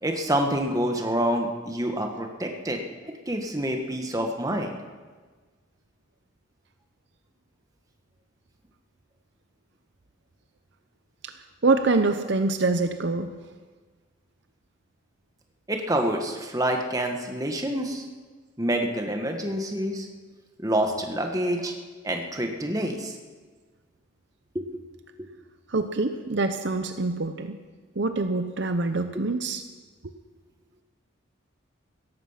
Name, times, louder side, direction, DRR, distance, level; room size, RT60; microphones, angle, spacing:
voice 1, 0.0-2.8 3.3-4.7 15.7-18.0 18.6-20.1 20.6-21.7 22.0-23.2 24.5-24.8 25.2-25.3, right 1 dB, 15° right, 3 dB, 1.5 m, -27 dB
voice 2, 11.6-13.3 25.7-27.6 28.0-29.6, right 3 dB, 55° right, 8 dB, 0.7 m, -25 dB
17.0 x 14.5 x 5.8 m, 1.4 s
head